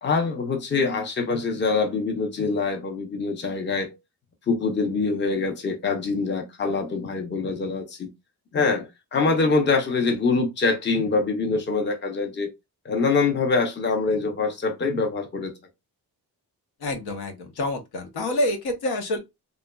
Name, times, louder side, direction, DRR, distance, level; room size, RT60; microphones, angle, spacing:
voice 1, 0.0-3.9 4.5-8.1 8.5-12.5 12.8-15.5, left 4 dB, 30° left, 0.6 m, -24 dB
voice 2, 16.8-19.2, left 1 dB, 80° left, 0.8 m, -27 dB
3.0 x 2.3 x 2.2 m
wide cardioid pair, 130°, 38 cm